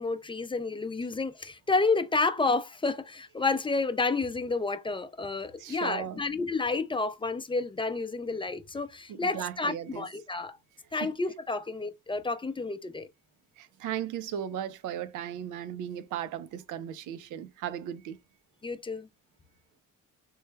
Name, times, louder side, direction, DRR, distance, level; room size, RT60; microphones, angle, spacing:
voice 1, 0.0-10.6 10.9-13.1 18.6-19.1, left 3 dB, 15° left, 0.4 m, -30 dB
voice 2, 5.6-6.2 9.1-10.0 11.0-11.1 13.6-18.2, right 10 dB, 85° right, 0.5 m, -36 dB
3.1 x 2.1 x 3.3 m
cardioid pair, 90°, 30 cm